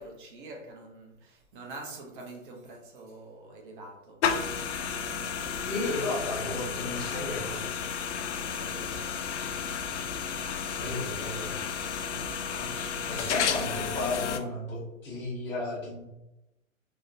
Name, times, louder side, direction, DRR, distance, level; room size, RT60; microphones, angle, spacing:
voice 1, 0.0-4.6 5.0-5.7 7.9-9.4 9.8-11.0, right 2 dB, 40° right, 0.8 m, -47 dB
sound 1, 4.2-14.4, left 7 dB, 60° left, 0.5 m, -32 dB
voice 2, 5.4-7.7 10.6-11.6 12.1-12.3 12.6-16.0, left 2 dB, 5° left, 0.5 m, -34 dB
3.6 x 2.1 x 2.6 m
hypercardioid pair, 125°, 40 cm